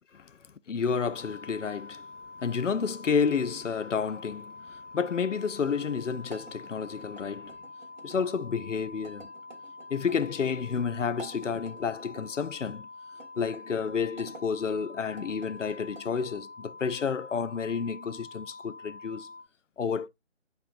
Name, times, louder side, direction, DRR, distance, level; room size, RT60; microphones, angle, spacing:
voice 1, 0.7-2.1 2.4-7.6 8.0-9.3 9.9-12.9 13.4-19.3 19.8-20.1, left 6 dB, 80° left, 0.7 m, -30 dB
sound 1, 0.9-19.4, left 3 dB, 5° right, 0.8 m, -46 dB
ARiggs Bowl Rolling and Wobbling, 6.3-8.3 9.0-10.3 11.1-12.3 13.1-14.4 15.0-16.4, right 4 dB, 35° right, 1.8 m, -50 dB
10.5 x 4.4 x 2.5 m
figure-of-eight pair, 150°, 37 cm